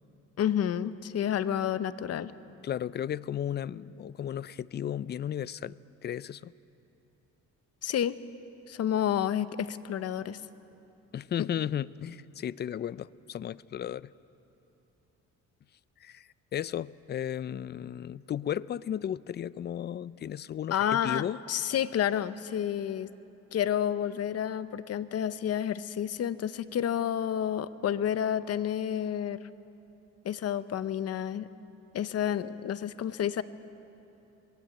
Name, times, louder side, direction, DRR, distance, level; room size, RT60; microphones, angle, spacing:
voice 1, 0.4-2.3 7.8-8.2 8.7-10.4 11.4-11.5 20.7-23.1 23.5-29.4 30.2-31.5 31.9-33.4, left 9 dB, 55° left, 15 dB, 0.8 m, -30 dB
voice 2, 2.6-5.8 6.0-6.5 11.1-14.1 16.0-21.4, left 10 dB, 35° left, 20 dB, 0.4 m, -34 dB
21.0 x 16.0 x 8.7 m, 3.0 s
cardioid pair, 90°, 30 cm